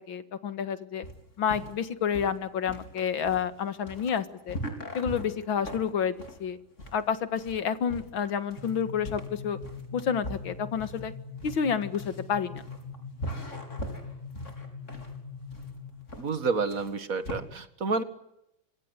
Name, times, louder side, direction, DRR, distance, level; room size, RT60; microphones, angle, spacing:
voice 1, 0.1-1.1 1.4-4.6 4.9-6.6 6.9-9.6 9.9-11.1 11.4-12.6, left 7 dB, 70° left, 12 dB, 2.4 m, -29 dB
sound 1, 1.0-17.4, equal, 35° left, 4.8 m, -41 dB
sound 2, 8.6-16.1, left 5 dB, 60° right, 3.2 m, -42 dB
voice 2, 16.2-18.0, right 4 dB, 45° right, 11 dB, 2.2 m, -29 dB
27.5 x 26.0 x 8.2 m, 0.84 s
omnidirectional pair, 2.2 m